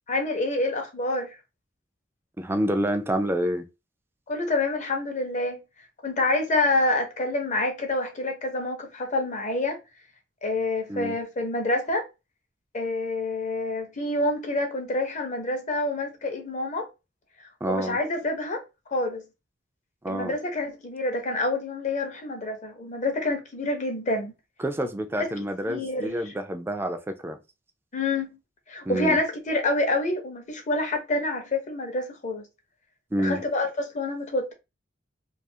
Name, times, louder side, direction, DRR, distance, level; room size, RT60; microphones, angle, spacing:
voice 1, 0.1-1.3 4.3-5.6 6.0-9.8 10.4-12.1 12.7-16.9 17.7-18.6 18.9-19.2 20.1-24.3 25.2-25.3 25.7-26.3 27.9-28.3 28.7-32.4 33.2-34.5, left 2 dB, 40° left, 0.6 m, -27 dB
voice 2, 2.4-3.6 10.9-11.2 17.6-18.0 20.0-20.3 24.6-27.4 28.9-29.2 33.1-33.4, right 1 dB, 10° right, 0.3 m, -28 dB
2.4 x 2.4 x 2.6 m
head